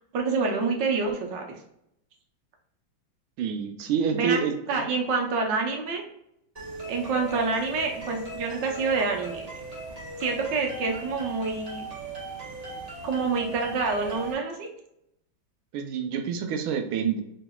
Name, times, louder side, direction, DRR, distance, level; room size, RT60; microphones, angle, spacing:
voice 1, 0.0-1.4 4.1-4.4 4.7-6.0 6.9-9.4 10.2-11.8 13.0-14.7, right 4 dB, 65° right, 1 dB, 1.4 m, -27 dB
voice 2, 3.4-4.8 15.7-17.2, right 7 dB, 85° right, 5 dB, 1.5 m, -27 dB
sound 1, 6.6-14.3, right 3 dB, 25° right, 1.0 m, -38 dB
4.8 x 3.2 x 2.3 m, 0.78 s
omnidirectional pair, 2.2 m